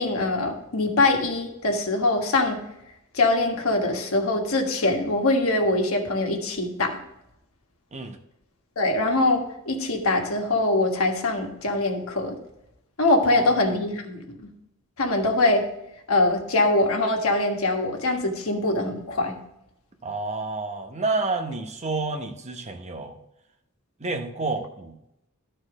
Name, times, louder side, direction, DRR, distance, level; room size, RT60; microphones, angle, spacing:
voice 1, 0.0-2.6 3.1-7.0 8.8-12.4 13.0-14.4 15.0-15.7 16.1-19.3, left 2 dB, 75° left, 2 dB, 1.5 m, -23 dB
voice 2, 20.0-23.2 24.0-24.9, right 3 dB, 30° right, 6 dB, 0.9 m, -29 dB
12.0 x 4.5 x 4.8 m, 0.83 s
head